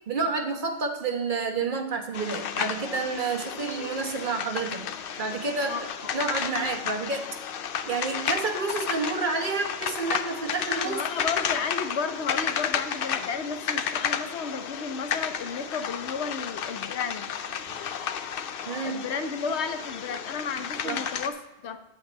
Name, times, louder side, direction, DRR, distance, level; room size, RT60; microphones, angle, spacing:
voice 1, 0.1-5.8 6.1-7.3 7.9-11.2 18.6-19.0 20.8-21.0, right 4 dB, 50° right, 3 dB, 1.3 m, -29 dB
sound 1, 2.1-21.3, left 8 dB, 60° left, 0.7 m, -32 dB
voice 2, 10.8-17.3 18.8-21.8, left 5 dB, 80° left, 9 dB, 1.0 m, -33 dB
8.7 x 8.0 x 4.0 m, 1.0 s
omnidirectional pair, 1.1 m